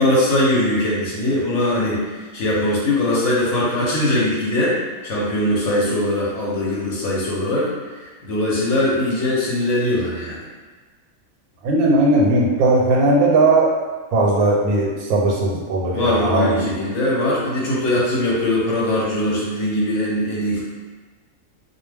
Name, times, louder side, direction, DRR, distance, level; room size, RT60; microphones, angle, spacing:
voice 1, 0.0-4.8 5.0-10.4 15.9-20.6, left 1 dB, 60° left, -6 dB, 0.9 m, -21 dB
voice 2, 11.6-13.7 14.1-16.7, right 2 dB, 90° right, -1 dB, 1.1 m, -17 dB
2.3 x 2.2 x 3.3 m, 1.3 s
omnidirectional pair, 1.5 m